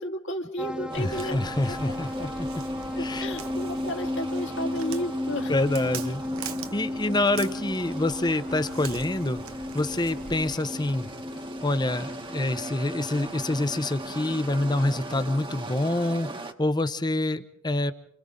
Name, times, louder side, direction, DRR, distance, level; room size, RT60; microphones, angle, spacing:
voice 1, 0.0-1.4 2.2-2.3 3.0-5.6 7.1-7.2, equal, 60° left, 3 dB, 2.2 m, -33 dB
sound 1, 0.6-15.5, left 1 dB, 5° right, 1.1 m, -35 dB
sound 2, 0.9-16.5, right 2 dB, 25° right, 1.2 m, -40 dB
Walk footsteps, 0.9-10.5, right 7 dB, 90° right, 1.2 m, -44 dB
voice 2, 1.0-2.3 3.0-3.3 5.5-9.4 9.7-11.1 11.6-17.9, left 2 dB, 20° left, 11 dB, 0.8 m, -27 dB
29.0 x 25.5 x 3.8 m, 0.74 s
head